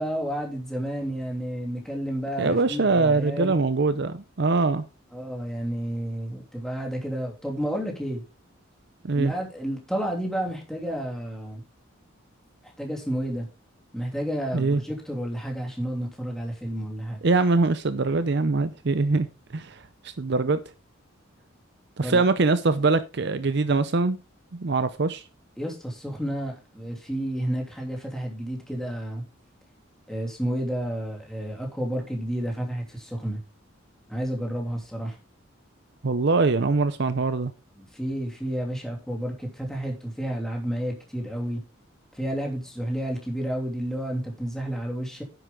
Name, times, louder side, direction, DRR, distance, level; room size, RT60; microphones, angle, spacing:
voice 1, 0.0-3.5 5.1-8.2 9.1-11.6 12.8-13.5 13.9-17.2 22.0-22.2 25.6-29.2 30.1-33.4 34.1-35.2 37.8-41.6 42.1-45.2, right 1 dB, ahead, 3.0 m, -31 dB
voice 2, 2.4-4.8 9.0-9.3 14.5-14.8 17.2-19.3 19.5-20.6 22.0-24.2 24.5-25.2 36.0-37.5, right 3 dB, 55° right, 0.6 m, -23 dB
10.0 x 7.8 x 3.8 m
head